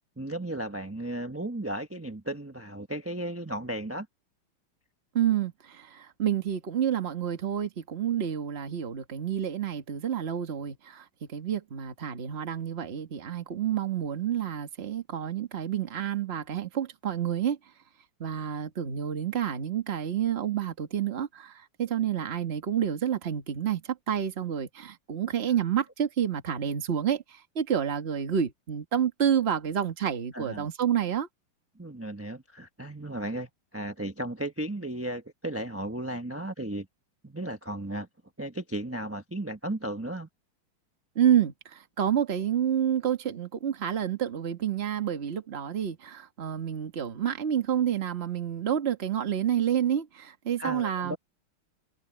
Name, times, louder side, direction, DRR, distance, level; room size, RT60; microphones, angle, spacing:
voice 1, 0.2-4.1 30.3-30.7 31.8-36.9 37.2-38.1 38.4-40.3 50.6-51.2, right 1 dB, 10° right, 0.8 m, -35 dB
voice 2, 5.1-17.6 18.2-31.3 41.1-51.2, right 9 dB, 30° right, 1.6 m, -29 dB
omnidirectional pair, 2.3 m